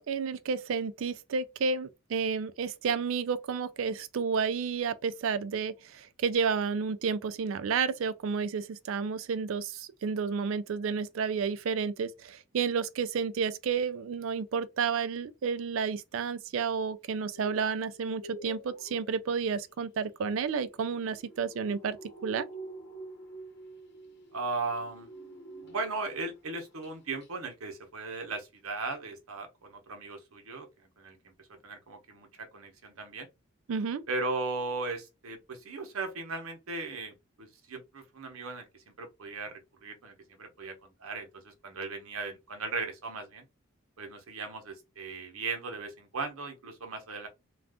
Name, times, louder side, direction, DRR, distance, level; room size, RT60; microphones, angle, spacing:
voice 1, 0.0-22.0 22.2-22.5 33.7-34.0, right 5 dB, 70° right, 0.4 m, -31 dB
sound 1, 17.2-26.3 26.6-26.9 27.2-27.3, right 1 dB, 55° left, 0.8 m, -48 dB
voice 2, 24.3-25.1 25.6-30.7 31.0-31.3 31.6-33.3 34.1-43.4 44.0-47.3, right 3 dB, 85° right, 0.8 m, -37 dB
2.4 x 2.3 x 3.5 m
head